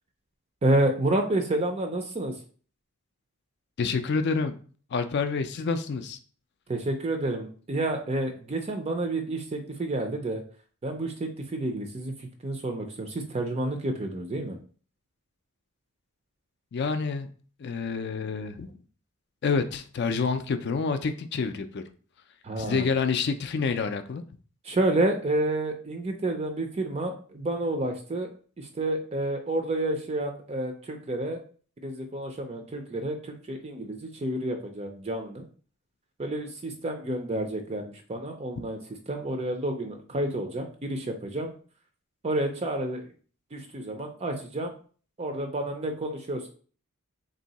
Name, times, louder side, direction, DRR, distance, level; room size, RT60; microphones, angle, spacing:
voice 1, 0.6-2.3 6.7-10.4 10.8-14.6 22.4-22.9 24.6-28.3 28.6-31.4 31.8-35.4 36.2-38.8 39.1-41.5 42.2-43.1 43.5-44.7 45.2-46.5, right 1 dB, 25° right, 4 dB, 0.4 m, -29 dB
voice 2, 3.8-4.5 4.9-6.2 16.7-17.3 17.6-18.7 19.4-21.8 22.6-24.2, left 5 dB, 50° left, 10 dB, 0.4 m, -28 dB
3.6 x 2.7 x 4.0 m, 0.42 s
head